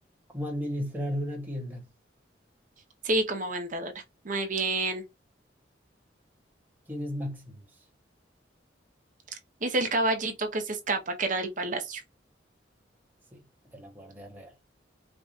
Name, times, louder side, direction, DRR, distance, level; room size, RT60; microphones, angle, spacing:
voice 1, 0.3-1.9 6.9-7.6 13.3-13.4 13.7-14.5, equal, 10° right, 1.3 m, -34 dB
voice 2, 3.0-3.9 4.2-5.0 9.6-12.0, right 2 dB, 45° right, 0.9 m, -28 dB
4.9 x 2.4 x 2.5 m
head